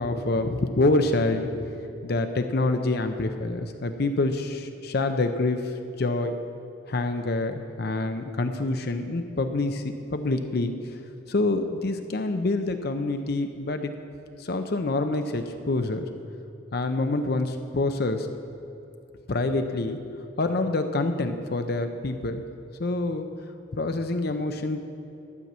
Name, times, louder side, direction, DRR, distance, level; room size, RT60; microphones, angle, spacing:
voice 1, 0.0-1.7 2.0-6.4 6.9-9.8 10.1-11.0 11.3-13.9 14.4-16.1 16.7-18.3 19.3-20.0 20.4-22.4 22.8-23.3 23.7-24.9, left 2 dB, 55° left, 7 dB, 0.6 m, -26 dB
12.0 x 5.8 x 8.1 m, 2.8 s
head